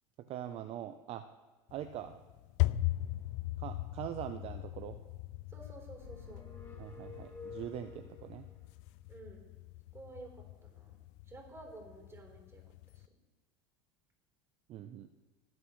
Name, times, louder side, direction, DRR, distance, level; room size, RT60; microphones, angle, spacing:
voice 1, 0.3-1.2 1.7-2.2 3.6-5.0 6.8-8.5 14.7-15.1, right 11 dB, 45° right, 9 dB, 0.7 m, -42 dB
sound 1, 1.7-13.1, left 17 dB, 60° left, 0.4 m, -40 dB
voice 2, 5.5-6.5 9.1-9.4 9.9-10.9 11.3-12.6 12.9-13.0, right 2 dB, 20° right, 0 dB, 3.9 m, -51 dB
sound 2, 5.9-8.3, left 5 dB, 15° left, 2.6 m, -50 dB
18.5 x 7.6 x 3.2 m, 1.3 s
hypercardioid pair, 95°, 14 cm